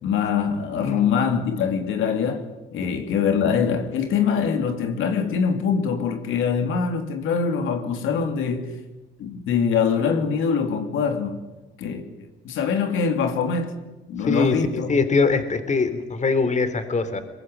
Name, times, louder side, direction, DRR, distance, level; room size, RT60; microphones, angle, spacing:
voice 1, 0.0-8.8 9.2-11.4 11.8-13.8 14.1-15.0, left 6 dB, 85° left, 3.2 m, -24 dB
voice 2, 14.2-17.2, left 4 dB, 35° left, 3.5 m, -22 dB
22.5 x 22.0 x 9.5 m
cardioid pair, 90°, 20 cm